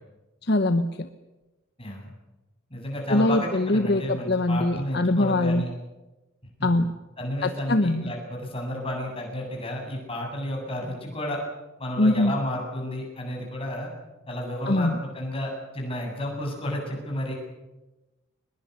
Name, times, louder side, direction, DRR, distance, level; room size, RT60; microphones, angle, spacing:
voice 1, 0.5-1.1 3.1-5.6 6.6-6.9 7.4-8.1 12.0-12.3 14.7-15.0, left 1 dB, 55° left, 10 dB, 1.0 m, -22 dB
voice 2, 1.8-2.1 2.7-5.7 7.2-11.4 11.8-13.9 14.3-17.4, left 1 dB, 25° left, 0 dB, 7.7 m, -32 dB
23.0 x 21.0 x 8.2 m, 1.1 s
head